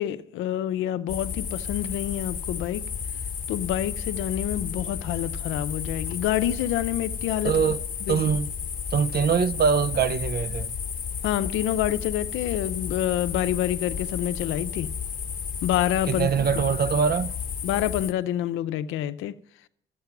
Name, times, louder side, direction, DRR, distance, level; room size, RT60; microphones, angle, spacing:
voice 1, 0.0-2.9 3.5-7.5 8.1-8.2 11.2-14.9 15.6-16.3 17.6-19.4, left 12 dB, 90° left, 0.6 m, -27 dB
sound 1, 1.1-18.1, left 7 dB, 45° left, 1.0 m, -33 dB
voice 2, 7.4-7.8 8.1-8.5 8.9-10.7 16.1-17.3, right 6 dB, 50° right, 0.6 m, -23 dB
13.0 x 8.4 x 5.9 m
cardioid pair, 90°, 20 cm